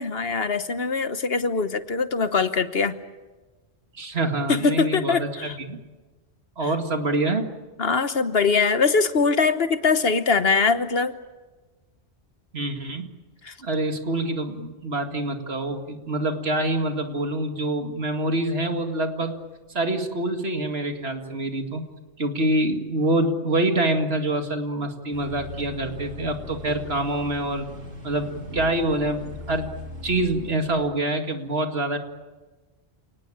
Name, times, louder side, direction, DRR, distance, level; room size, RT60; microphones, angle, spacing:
voice 1, 0.0-2.9 4.5-5.5 7.8-11.1 13.5-13.6, left 4 dB, 60° left, 11 dB, 1.4 m, -22 dB
voice 2, 3.9-5.8 6.6-7.5 12.5-13.1 13.6-19.4 19.7-21.8 22.2-27.7 28.0-29.7 30.0-32.0, right 1 dB, 65° right, 5 dB, 2.4 m, -26 dB
sound 1, 25.1-30.7, left 2 dB, 90° right, 4.1 m, -39 dB
29.0 x 19.0 x 8.8 m, 1.2 s
omnidirectional pair, 1.1 m